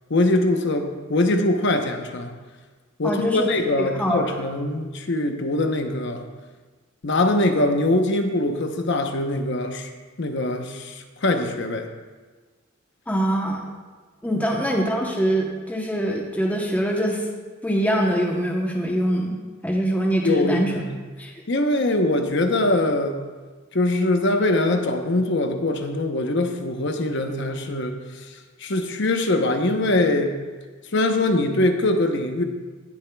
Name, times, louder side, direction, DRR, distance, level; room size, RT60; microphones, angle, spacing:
voice 1, 0.1-2.3 3.0-6.3 7.0-9.9 10.2-11.9 14.3-14.4 20.2-20.9 21.5-23.2 23.7-28.3 28.6-30.4 30.9-32.4, left 2 dB, 60° left, 5 dB, 0.9 m, -22 dB
voice 2, 3.0-3.5 3.8-4.2 13.1-13.6 14.2-17.2 17.6-20.7 21.2-21.3, equal, 10° left, 0 dB, 0.8 m, -23 dB
17.0 x 7.2 x 2.3 m, 1.4 s
head